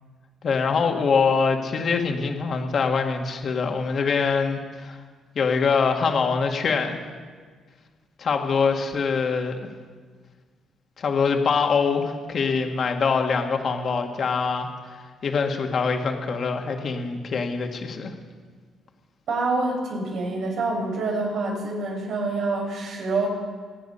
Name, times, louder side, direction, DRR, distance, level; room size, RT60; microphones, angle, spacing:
voice 1, 0.4-5.0 5.4-7.0 8.2-9.6 11.0-18.1, left 5 dB, 55° left, 3 dB, 1.9 m, -24 dB
voice 2, 19.3-23.3, right 3 dB, 70° right, -1 dB, 5.3 m, -26 dB
25.0 x 9.2 x 5.6 m, 1.6 s
cardioid pair, 90°, 0 cm